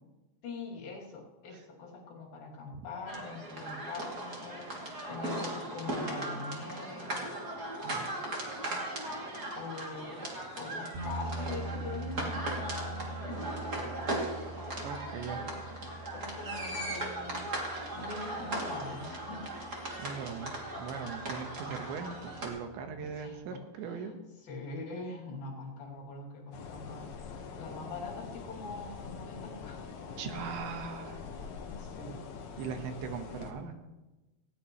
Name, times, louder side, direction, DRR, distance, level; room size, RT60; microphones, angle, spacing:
voice 1, 0.4-7.3 9.6-10.3 10.6-14.2 15.3-15.6 16.1-17.4 17.9-19.8 23.0-24.1 24.4-29.9 31.7-32.2, left 3 dB, 60° left, -3 dB, 4.3 m, -43 dB
sound 1, 3.1-22.5, right 1 dB, 30° right, 2.3 m, -38 dB
sound 2, 10.9-23.3, right 2 dB, 65° right, 4.0 m, -44 dB
voice 2, 14.8-15.4 20.0-20.5 20.8-24.1 30.2-31.2 32.6-33.8, right 6 dB, 85° right, 5 dB, 3.6 m, -40 dB
sound 3, 26.5-33.5, left 5 dB, 90° left, 1.5 m, -44 dB
18.5 x 17.0 x 3.1 m, 1.1 s
omnidirectional pair, 5.1 m